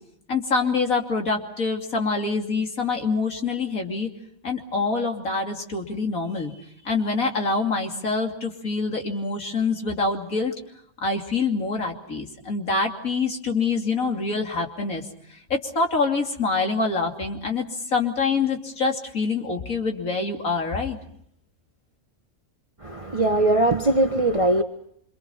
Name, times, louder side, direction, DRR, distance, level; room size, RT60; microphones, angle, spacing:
voice 1, 0.3-4.1 4.4-10.5 11.0-15.0 15.5-17.6 17.9-21.0, left 4 dB, 90° left, 2 dB, 3.2 m, -25 dB
voice 2, 22.8-24.6, right 1 dB, 25° right, 5 dB, 1.2 m, -20 dB
27.0 x 26.0 x 5.7 m, 0.72 s
omnidirectional pair, 1.4 m